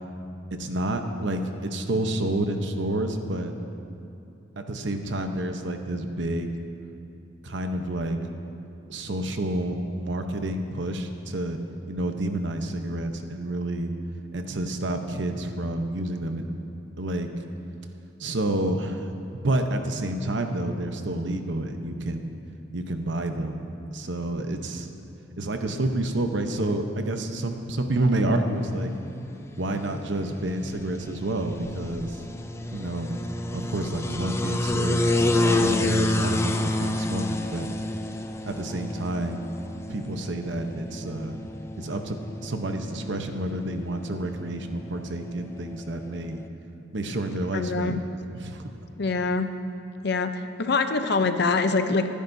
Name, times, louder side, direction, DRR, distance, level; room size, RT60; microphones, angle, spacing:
voice 1, 0.6-3.5 4.6-6.5 7.4-8.2 8.9-11.6 11.9-13.9 14.3-16.5 17.0-17.3 18.2-19.0 19.4-22.3 22.7-24.9 25.4-28.9 29.6-32.2 32.7-33.2 33.5-35.0 35.3-37.7 38.4-39.5 39.9-41.4 41.8-42.2 42.4-46.4 46.9-48.0 48.3-48.7, right 1 dB, 65° right, 6 dB, 0.9 m, -29 dB
sound 1, 28.4-46.5, left 2 dB, 15° left, 0.5 m, -30 dB
voice 2, 47.5-48.0 49.0-49.5 50.0-52.1, left 4 dB, 60° left, 8 dB, 0.6 m, -24 dB
23.0 x 10.0 x 2.7 m, 2.8 s
head